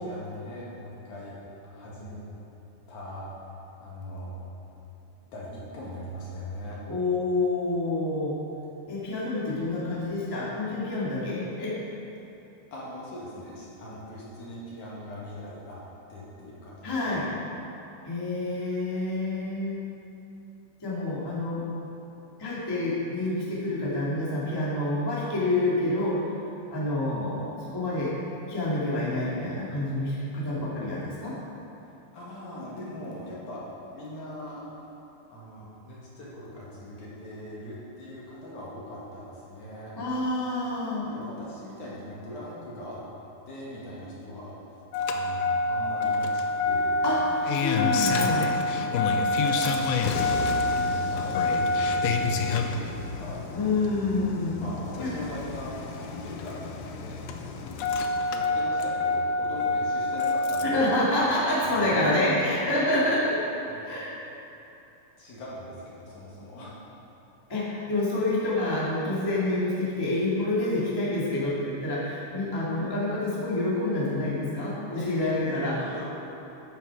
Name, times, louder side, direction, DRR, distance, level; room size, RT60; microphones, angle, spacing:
voice 1, 0.0-1.4 1.6-2.2 2.9-3.3 3.8-4.4 5.3-6.8 12.7-15.8 16.1-17.3 32.1-34.6 35.3-39.9 41.0-43.0 43.5-44.5 45.1-46.3 46.6-47.0 48.7-49.9 50.6-53.5 54.6-57.9 58.3-61.0 61.6-63.1 63.6-63.9 65.2-66.7 74.9-76.1, left 1 dB, 55° left, -6 dB, 2.8 m, -40 dB
voice 2, 6.9-8.4 8.9-11.8 16.8-17.3 18.0-19.8 20.8-21.6 22.4-26.2 26.7-28.1 28.5-31.3 39.9-41.1 47.0-47.2 47.6-48.5 53.5-54.6 55.0-55.1 60.6-63.4 63.8-64.1 67.5-75.8, left 2 dB, 15° left, -8 dB, 0.8 m, -27 dB
Engine starting, 44.9-60.9 62.1-62.2, left 3 dB, 90° left, 2.2 m, -27 dB
11.5 x 9.2 x 4.8 m, 2.9 s
omnidirectional pair, 5.1 m